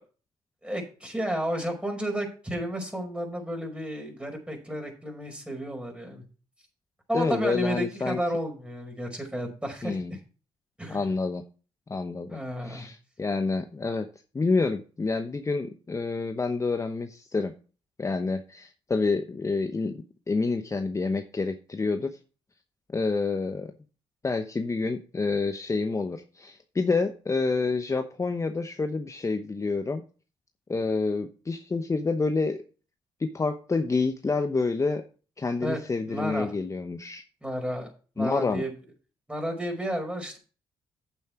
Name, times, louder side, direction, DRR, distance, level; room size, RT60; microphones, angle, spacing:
voice 1, 0.6-6.2 7.1-10.2 10.8-11.1 12.3-12.9 35.6-35.8 36.1-36.5 37.4-38.7 39.3-40.4, right 1 dB, 10° right, 2 dB, 5.2 m, -32 dB
voice 2, 7.1-8.2 9.8-10.2 10.9-11.4 11.9-12.4 12.6-14.1 14.3-17.5 18.0-22.2 22.9-23.7 24.2-30.0 30.7-32.6 33.2-35.0 35.4-37.2 38.2-38.6, left 4 dB, 30° left, 7 dB, 0.9 m, -28 dB
8.8 x 7.5 x 4.8 m, 0.36 s
supercardioid pair, 55°, 11 cm